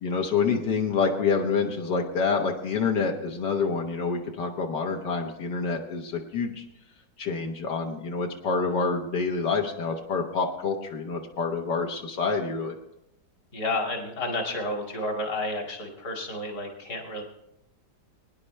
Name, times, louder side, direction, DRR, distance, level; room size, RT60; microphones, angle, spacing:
voice 1, 0.0-6.6 7.2-12.8, left 5 dB, 80° left, 2 dB, 1.8 m, -27 dB
voice 2, 13.5-17.2, left 2 dB, 60° left, 1 dB, 2.8 m, -31 dB
22.5 x 10.0 x 3.3 m, 0.81 s
omnidirectional pair, 1.8 m